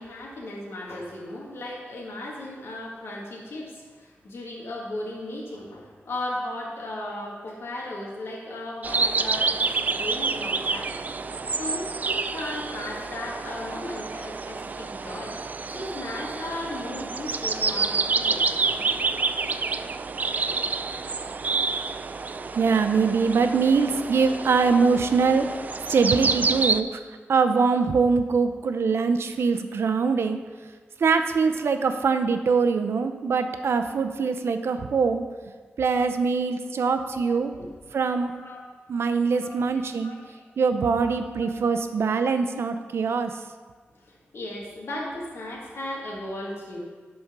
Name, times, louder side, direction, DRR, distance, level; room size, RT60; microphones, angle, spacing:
voice 1, 0.0-11.0 11.6-15.4 15.7-18.8 36.7-37.7 38.4-38.7 39.4-40.5 41.1-41.5 44.0-46.8, left 1 dB, 70° left, -3 dB, 1.6 m, -36 dB
sound 1, 8.8-26.8, right 4 dB, 40° right, 0.3 m, -28 dB
voice 2, 22.6-25.5 25.9-27.0 27.3-30.4 31.0-35.2 35.8-37.5 37.9-38.3 38.9-40.1 40.6-43.3, right 5 dB, 75° right, 8 dB, 0.6 m, -23 dB
11.0 x 4.4 x 5.9 m, 1.5 s
wide cardioid pair, 130°, 4 cm